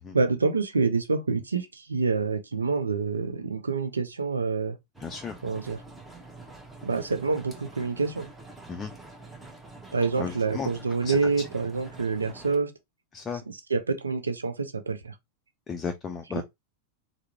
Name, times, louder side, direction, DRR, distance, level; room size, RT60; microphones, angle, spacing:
voice 1, 0.1-4.8 5.4-5.8 6.8-8.3 9.9-12.7 13.5-15.1 16.3-16.4, right 4 dB, 75° right, 0.5 m, -27 dB
sound 1, 4.9-12.6, right 2 dB, 5° right, 0.8 m, -46 dB
voice 2, 5.0-5.4 8.7-8.9 10.2-10.7 11.0-11.2 13.1-13.4 15.7-16.4, left 5 dB, 20° left, 0.4 m, -34 dB
3.5 x 2.0 x 2.9 m
figure-of-eight pair, 90°, 0 cm